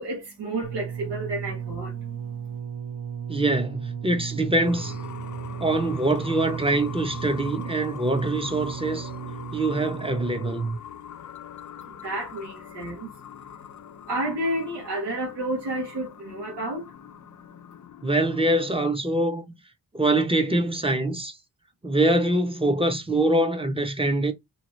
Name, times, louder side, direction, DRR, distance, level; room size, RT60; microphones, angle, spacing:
voice 1, 0.0-2.6 11.8-17.6, right 1 dB, 90° right, 1.1 m, -32 dB
sound 1, 0.6-10.7 11.6-11.7, right 8 dB, 50° right, 0.7 m, -35 dB
voice 2, 3.3-5.0 5.6-9.1 9.5-10.8 18.0-19.5 19.9-21.4 21.8-24.3, right 1 dB, 15° right, 0.6 m, -24 dB
sound 2, 4.6-18.7, left 8 dB, 50° left, 0.5 m, -42 dB
2.9 x 2.4 x 3.0 m
cardioid pair, 75°, 40 cm